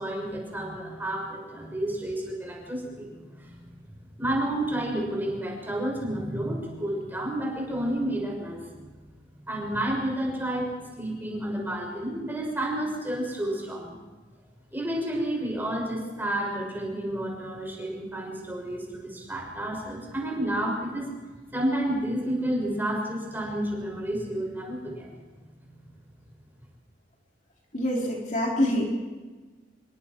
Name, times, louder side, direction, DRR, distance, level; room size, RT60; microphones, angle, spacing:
voice 1, 0.0-3.1 3.4-3.7 4.2-8.6 9.5-14.0 14.7-21.1 21.5-25.1, right 1 dB, 10° right, -1 dB, 5.9 m, -30 dB
voice 2, 27.7-28.8, left 1 dB, 40° left, -2 dB, 3.3 m, -25 dB
27.0 x 23.0 x 4.5 m, 1.3 s
head